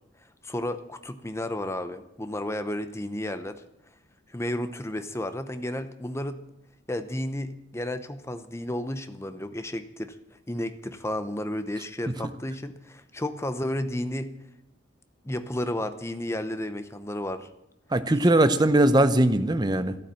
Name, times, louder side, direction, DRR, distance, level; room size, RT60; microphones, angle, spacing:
voice 1, 0.4-3.6 4.3-6.4 6.9-14.3 15.2-17.5, left 1 dB, 15° left, 10 dB, 0.7 m, -32 dB
voice 2, 17.9-20.0, right 1 dB, 20° right, 11 dB, 0.7 m, -20 dB
13.0 x 12.5 x 7.6 m, 0.85 s
head